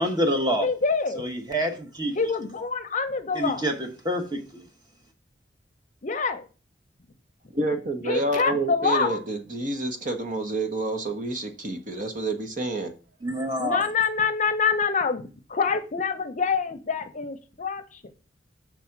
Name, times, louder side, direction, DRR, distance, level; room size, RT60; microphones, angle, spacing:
voice 1, 0.0-0.7 1.2-2.2 3.3-4.6 13.2-13.9, equal, 25° right, 4 dB, 1.3 m, -27 dB
voice 2, 0.6-1.2 2.1-3.7 6.0-6.5 8.1-9.2 13.6-18.0, left 5 dB, 45° left, 9 dB, 0.7 m, -26 dB
voice 3, 7.5-12.9, right 2 dB, 45° right, 7 dB, 1.0 m, -28 dB
6.2 x 4.1 x 5.8 m, 0.34 s
head